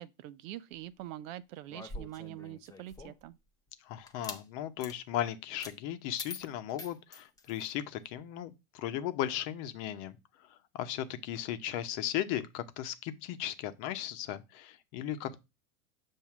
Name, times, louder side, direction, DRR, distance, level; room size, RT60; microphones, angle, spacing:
voice 1, 0.0-3.4, right 14 dB, 60° right, 0.6 m, -44 dB
sound 1, 1.7-3.3 4.1-4.4 4.8-5.0 5.6-5.8 6.2-7.7, left 3 dB, 10° left, 0.6 m, -45 dB
voice 2, 3.8-10.1 10.7-15.4, left 11 dB, 50° left, 0.9 m, -36 dB
7.2 x 2.8 x 5.9 m
hypercardioid pair, 120°, 46 cm